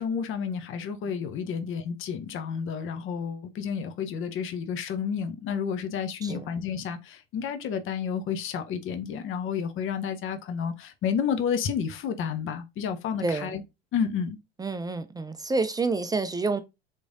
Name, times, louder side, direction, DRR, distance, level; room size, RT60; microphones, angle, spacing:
voice 1, 0.0-13.6 13.9-14.4, left 7 dB, 40° left, 0.7 m, -30 dB
voice 2, 13.2-13.6 14.6-16.6, right 3 dB, 15° right, 0.4 m, -28 dB
3.6 x 3.1 x 2.6 m
hypercardioid pair, 75°, 31 cm